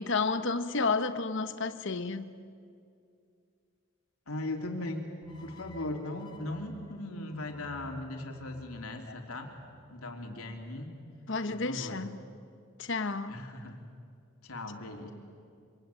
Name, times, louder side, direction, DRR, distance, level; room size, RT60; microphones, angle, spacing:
voice 1, 0.0-2.4 11.3-12.2 12.8-13.4, left 4 dB, 55° left, 1.1 m, -31 dB
voice 2, 4.3-5.1 5.4-9.5 9.9-11.0 11.5-12.0 13.3-13.8 14.4-15.1, left 1 dB, 80° left, 3.3 m, -38 dB
sound 1, 5.2-10.4, left 2 dB, 20° left, 2.3 m, -55 dB
26.0 x 25.0 x 9.1 m
head